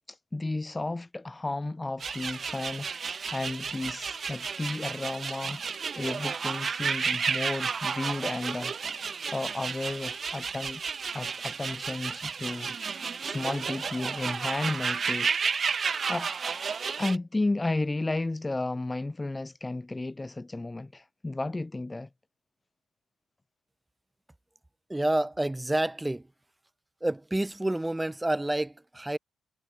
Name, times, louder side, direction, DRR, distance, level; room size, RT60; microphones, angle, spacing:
voice 1, 0.1-5.6 6.0-10.8 11.1-12.7 13.2-16.3 17.0-22.1, left 2 dB, 15° left, 0.9 m, -33 dB
sound 1, 2.0-17.2, right 6 dB, 40° right, 0.6 m, -32 dB
voice 2, 24.9-26.3 27.0-29.2, right 1 dB, 10° right, 2.1 m, -28 dB
cardioid pair, 90°, 0 cm